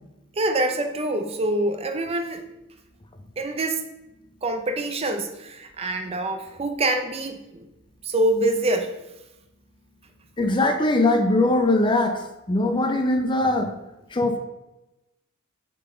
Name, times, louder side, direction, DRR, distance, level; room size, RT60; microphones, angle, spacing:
voice 1, 0.4-2.5 3.4-3.8 4.4-7.7 8.0-9.0, right 1 dB, 30° right, 6 dB, 0.5 m, -25 dB
voice 2, 10.4-13.7 14.1-14.4, left 2 dB, 20° left, 5 dB, 0.5 m, -21 dB
6.7 x 3.9 x 3.8 m, 0.96 s
head